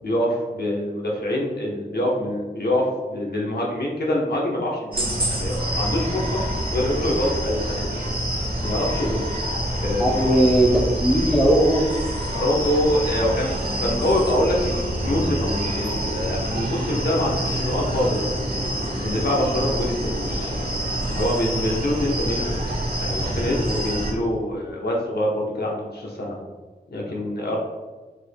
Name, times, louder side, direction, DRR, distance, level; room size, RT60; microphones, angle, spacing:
voice 1, 0.0-6.4 6.7-8.1 8.6-9.3 9.8-10.4 12.3-18.7 19.0-20.7 21.1-22.6 23.0-26.4 26.9-27.6, left 1 dB, 70° left, -2 dB, 0.9 m, -25 dB
sound 1, 4.9-24.1, right 1 dB, 60° right, 1.5 m, -26 dB
voice 2, 10.0-11.8, right 1 dB, 5° right, 0 dB, 0.7 m, -18 dB
4.8 x 4.5 x 2.2 m, 1.3 s
wide cardioid pair, 90°, 17 cm